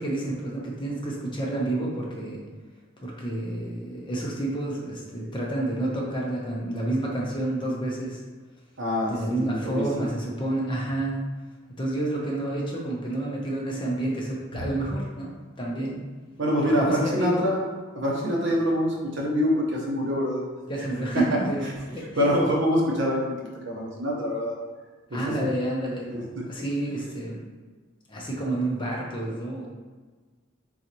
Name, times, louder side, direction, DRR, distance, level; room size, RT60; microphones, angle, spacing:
voice 1, 0.0-2.4 3.0-8.2 9.1-11.2 11.8-15.3 15.6-16.0 16.6-17.5 20.7-22.3 25.1-26.1 26.4-27.4 28.1-29.7, right 1 dB, 25° left, -3 dB, 0.7 m, -29 dB
voice 2, 8.8-10.1 14.5-14.6 16.4-17.6 17.9-20.4 22.2-23.4 23.6-24.6 25.1-25.5 26.1-26.4, equal, 60° right, -3 dB, 1.0 m, -25 dB
3.9 x 3.9 x 3.0 m, 1.3 s
head